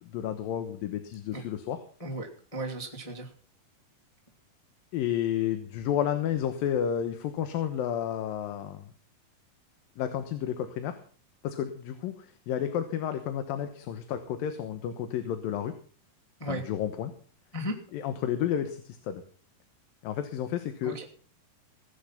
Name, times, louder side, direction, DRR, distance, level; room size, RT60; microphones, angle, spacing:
voice 1, 0.0-1.8 4.9-8.8 10.0-11.0 11.4-15.7 16.5-17.1 17.9-19.2 20.0-21.0, left 10 dB, 80° left, 8 dB, 2.9 m, -31 dB
voice 2, 2.0-3.3 16.4-16.6 17.5-17.8 20.8-21.0, right 1 dB, 15° left, 0 dB, 1.6 m, -35 dB
18.0 x 10.5 x 5.8 m, 0.43 s
omnidirectional pair, 4.1 m